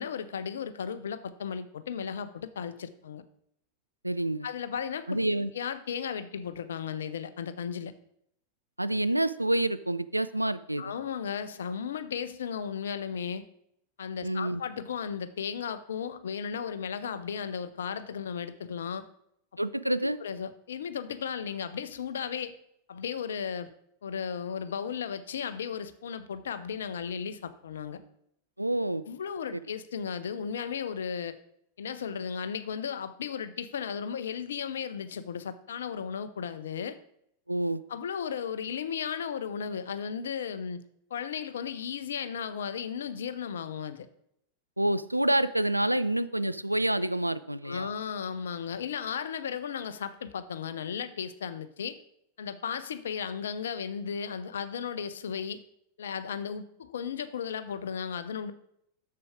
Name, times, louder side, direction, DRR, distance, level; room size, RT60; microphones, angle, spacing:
voice 1, 0.0-3.2 4.4-5.2 5.5-7.9 10.8-13.4 14.0-19.1 20.0-22.5 22.9-23.7 24.0-28.0 29.1-31.4 31.8-37.0 37.9-40.8 41.1-44.1 47.6-52.0 52.4-55.6 56.0-58.5, left 7 dB, 65° left, 13 dB, 0.6 m, -35 dB
voice 2, 4.0-4.5 5.1-5.5 8.8-11.0 14.2-14.6 19.6-20.2 28.6-29.0 29.5-29.6 37.5-37.8 44.8-47.9, right 1 dB, 85° right, 14 dB, 0.3 m, -28 dB
6.9 x 6.7 x 4.8 m, 0.73 s
figure-of-eight pair, 90°, 0 cm